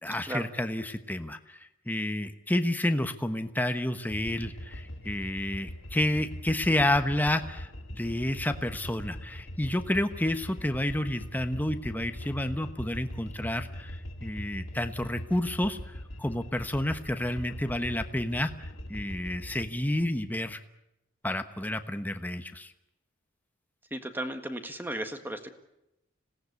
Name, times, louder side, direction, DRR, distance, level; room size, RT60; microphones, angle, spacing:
voice 1, 0.0-15.8 16.2-18.5 18.9-20.6 21.2-22.7, left 1 dB, 10° left, 8 dB, 1.2 m, -30 dB
sound 1, 4.1-19.7, equal, 70° left, 3.0 m, -41 dB
voice 2, 23.9-25.5, right 1 dB, 10° right, 7 dB, 1.7 m, -35 dB
26.5 x 18.0 x 8.4 m, 0.89 s
head